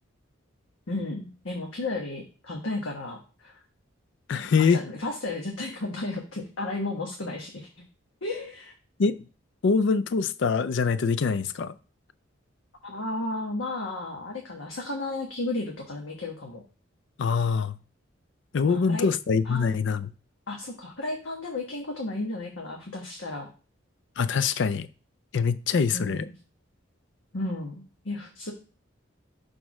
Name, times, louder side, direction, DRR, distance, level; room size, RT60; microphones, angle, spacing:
voice 1, 0.9-3.5 4.3-7.9 8.2-8.7 12.8-16.6 18.6-19.1 19.4-19.8 20.5-23.5 25.9-26.3 27.3-28.5, left 2 dB, 85° left, 1.3 m, -33 dB
voice 2, 4.3-4.8 9.0-9.2 9.6-11.7 17.2-17.8 18.5-20.1 24.2-24.9 25.3-26.3, left 5 dB, 60° left, 0.4 m, -24 dB
6.3 x 3.6 x 6.0 m
head